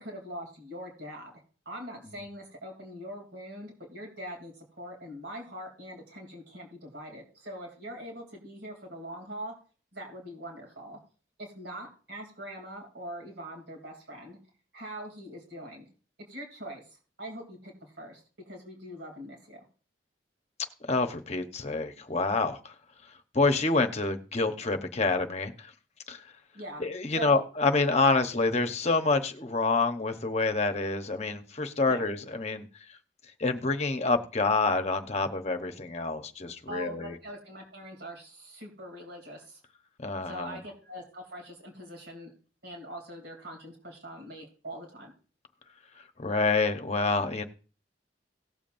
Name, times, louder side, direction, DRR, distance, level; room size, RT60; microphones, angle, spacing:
voice 1, 0.0-9.5 9.9-11.0 11.4-14.4 14.7-15.8 16.3-19.6 26.5-26.8 27.1-27.4 28.1-28.2 31.9-32.1 36.7-39.6 40.2-42.3 42.6-45.1, right 1 dB, 70° right, 3.0 m, -43 dB
voice 2, 20.9-22.7 23.3-25.5 26.1-26.2 26.8-32.6 33.4-37.1 40.0-40.6 46.2-47.4, left 3 dB, 35° left, 0.9 m, -27 dB
18.5 x 7.2 x 2.6 m
head